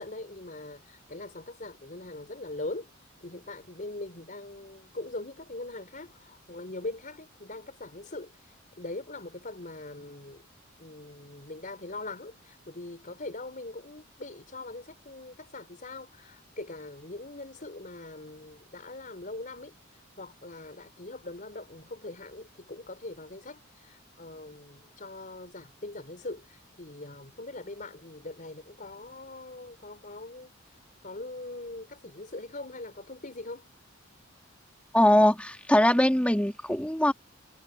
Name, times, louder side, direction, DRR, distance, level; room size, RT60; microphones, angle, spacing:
voice 1, 0.0-2.9 3.2-10.4 10.8-33.7, left 2 dB, 45° left, 4.5 m, -42 dB
voice 2, 34.9-37.1, left 1 dB, 5° left, 2.6 m, -22 dB
head